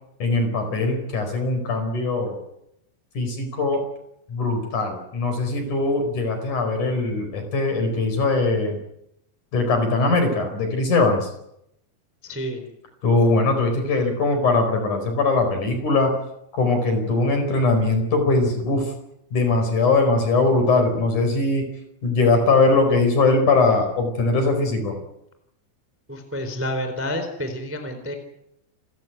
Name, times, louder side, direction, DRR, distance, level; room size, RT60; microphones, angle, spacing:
voice 1, 0.2-2.4 3.1-3.8 4.3-8.8 9.5-11.3 13.0-16.1 16.5-18.9 19.3-21.7 22.0-25.0, left 3 dB, 45° left, 6 dB, 5.8 m, -21 dB
voice 2, 12.2-12.7 26.1-28.1, equal, 5° right, 6 dB, 2.9 m, -29 dB
30.0 x 14.5 x 9.3 m, 0.82 s
omnidirectional pair, 5.3 m